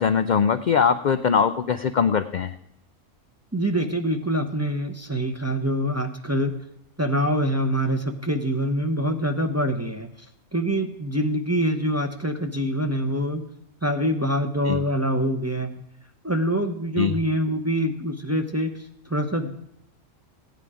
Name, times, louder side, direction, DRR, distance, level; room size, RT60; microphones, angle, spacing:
voice 1, 0.0-2.5 14.6-14.8 17.0-17.1, left 6 dB, 65° left, 10 dB, 0.4 m, -21 dB
voice 2, 3.5-6.5 7.0-10.1 10.5-13.4 13.8-15.7 16.2-18.7 19.1-19.5, equal, 15° right, 4 dB, 0.7 m, -25 dB
15.5 x 9.5 x 4.9 m, 0.79 s
omnidirectional pair, 1.4 m